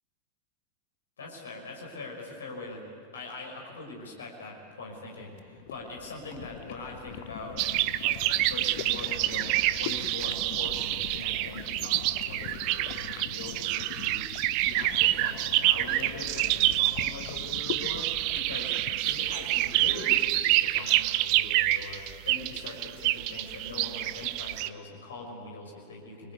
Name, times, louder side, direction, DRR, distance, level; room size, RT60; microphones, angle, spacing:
voice 1, 1.2-2.8 3.1-7.6 8.0-18.7 19.1-26.3, left 2 dB, 70° left, 0 dB, 5.9 m, -42 dB
sound 1, 5.3-20.6, left 13 dB, 50° left, 0.9 m, -43 dB
sound 2, 7.6-24.7, right 16 dB, 45° right, 0.8 m, -27 dB
29.0 x 23.0 x 8.5 m, 2.3 s
figure-of-eight pair, 90°, 0 cm